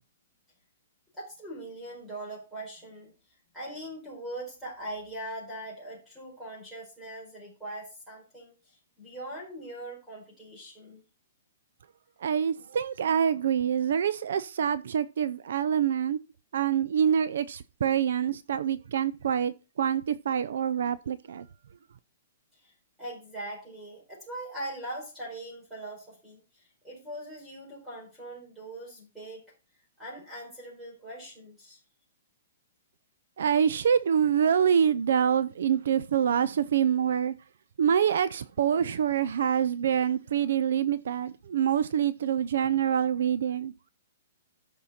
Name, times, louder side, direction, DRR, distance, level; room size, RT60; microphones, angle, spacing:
voice 1, 1.1-3.1 3.5-11.0 22.6-22.7 23.0-29.5 30.0-31.8, right 1 dB, ahead, 4.7 m, -41 dB
voice 2, 12.2-16.2 16.5-21.5 33.4-37.3 37.8-43.7, right 8 dB, 65° right, 0.5 m, -26 dB
13.5 x 5.5 x 4.3 m
hypercardioid pair, 170°, 0 cm